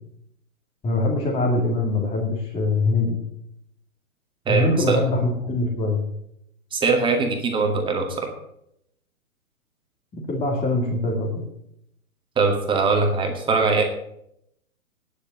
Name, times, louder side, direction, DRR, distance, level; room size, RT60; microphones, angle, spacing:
voice 1, 0.8-3.2 4.5-6.0 10.1-11.3, left 2 dB, 15° left, 0 dB, 2.2 m, -23 dB
voice 2, 4.5-5.0 6.7-8.3 12.4-13.8, right 4 dB, 10° right, 3 dB, 2.1 m, -21 dB
10.0 x 8.1 x 9.4 m, 0.77 s
figure-of-eight pair, 125°, 42 cm